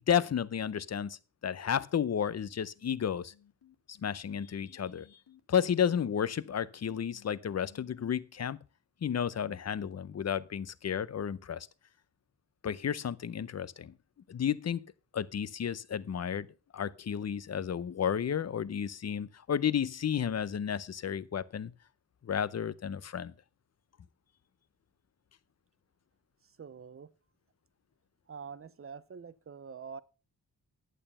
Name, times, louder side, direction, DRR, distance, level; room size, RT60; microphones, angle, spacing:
voice 1, 0.0-3.3 4.0-5.1 5.5-8.6 9.0-11.7 12.6-13.9 14.3-14.8 15.1-16.5 16.7-21.7 22.2-23.3, left 8 dB, 45° left, 0.6 m, -32 dB
sound 1, 2.4-8.1, left 10 dB, 80° left, 2.4 m, -60 dB
voice 2, 26.6-27.1 28.3-30.0, right 6 dB, 35° right, 0.6 m, -45 dB
11.0 x 9.0 x 5.4 m
wide cardioid pair, 170°, 39 cm